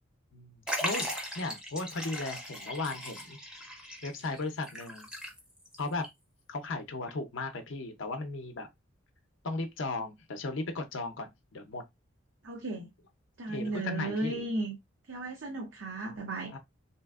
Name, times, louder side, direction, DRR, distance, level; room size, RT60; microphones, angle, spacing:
voice 1, 0.3-3.4 4.0-5.1 5.8-6.1 6.5-8.7 9.4-11.8 13.5-14.5 16.5-16.6, left 3 dB, 65° left, 0.6 m, -36 dB
Liquid, 0.7-5.8 6.0-6.1 7.1-7.2, equal, 5° right, 0.6 m, -38 dB
voice 2, 12.4-12.9 13.4-14.8 15.1-16.5, right 2 dB, 65° right, 0.6 m, -35 dB
3.3 x 2.8 x 2.3 m
head